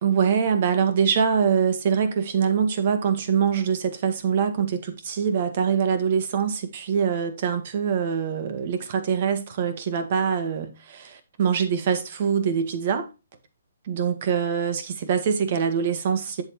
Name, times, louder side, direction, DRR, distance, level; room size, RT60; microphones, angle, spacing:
voice 1, 0.0-13.1 13.9-16.4, right 7 dB, 50° right, 1.8 m, -24 dB
7.9 x 7.7 x 3.1 m
hypercardioid pair, 150°, 0 cm